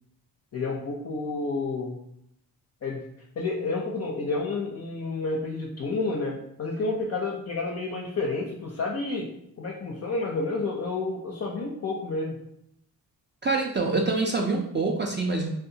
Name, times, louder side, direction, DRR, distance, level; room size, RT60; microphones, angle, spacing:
voice 1, 0.5-2.0 2.8-3.0 3.4-9.3 9.6-12.4, left 3 dB, 40° left, -2 dB, 0.5 m, -30 dB
voice 2, 13.4-15.6, right 3 dB, 30° right, 0 dB, 0.4 m, -26 dB
2.6 x 2.2 x 2.6 m, 0.75 s
cardioid pair, 55°, 43 cm